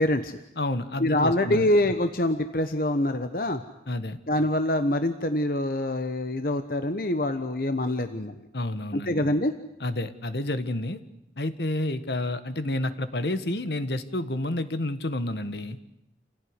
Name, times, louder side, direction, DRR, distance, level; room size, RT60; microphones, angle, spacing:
voice 1, 0.0-0.4 1.0-3.6 4.3-8.4 8.9-9.5, left 1 dB, 55° left, 8 dB, 1.2 m, -25 dB
voice 2, 0.6-1.6 3.9-4.2 8.5-9.2 9.8-11.0 11.4-15.8, left 1 dB, 70° left, 11 dB, 1.6 m, -29 dB
28.5 x 17.0 x 9.8 m, 0.83 s
head